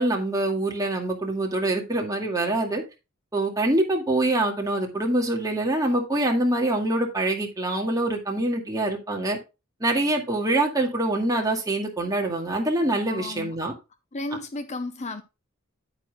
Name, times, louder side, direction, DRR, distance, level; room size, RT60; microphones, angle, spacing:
voice 1, 0.0-2.8 3.3-9.4 9.8-13.7 14.3-14.4, right 1 dB, 15° right, 2.1 m, -25 dB
voice 2, 13.1-13.6 14.1-15.2, left 2 dB, 35° left, 0.7 m, -33 dB
9.6 x 9.0 x 2.3 m
head